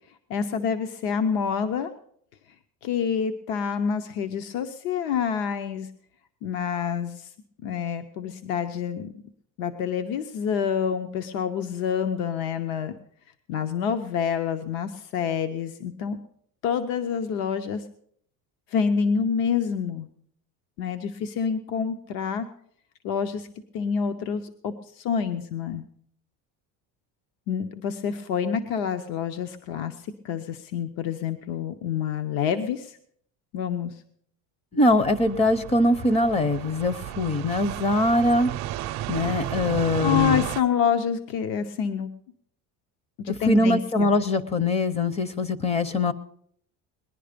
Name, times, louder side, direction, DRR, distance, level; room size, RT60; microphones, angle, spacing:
voice 1, 0.3-1.9 2.8-5.9 6.4-7.3 7.6-9.1 9.6-13.0 13.5-16.2 16.6-17.8 18.7-20.1 20.8-22.5 23.0-23.5 23.7-25.8 27.5-33.0 33.5-34.0 40.0-42.1 43.2-44.1, left 7 dB, 70° left, 8 dB, 1.0 m, -27 dB
voice 2, 34.7-38.5 39.1-40.4 43.5-46.1, left 1 dB, 20° left, 15 dB, 0.6 m, -22 dB
sound 1, 34.9-40.6, right 14 dB, 50° right, 0.5 m, -33 dB
20.0 x 11.0 x 5.1 m, 0.65 s
cardioid pair, 165°, 36 cm